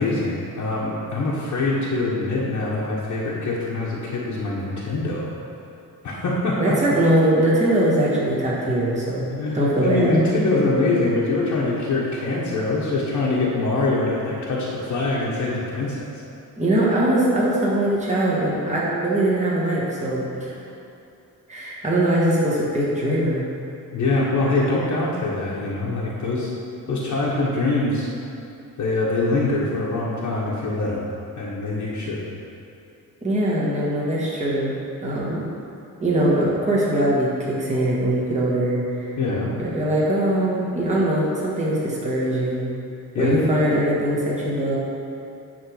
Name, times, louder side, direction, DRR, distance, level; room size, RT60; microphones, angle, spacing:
voice 1, 0.0-5.3 6.0-6.7 9.3-16.1 23.9-26.5 26.9-28.1 28.8-31.0 31.4-32.3 39.2-39.5 43.1-43.4, left 2 dB, 55° left, -6 dB, 1.2 m, -23 dB
voice 2, 6.6-10.1 16.6-20.5 21.5-23.4 33.2-34.7 35.0-35.4 36.0-39.1 39.6-42.6 43.2-44.8, right 1 dB, 20° right, -6 dB, 1.7 m, -21 dB
9.9 x 3.6 x 6.4 m, 2.8 s
cardioid pair, 140°, 35 cm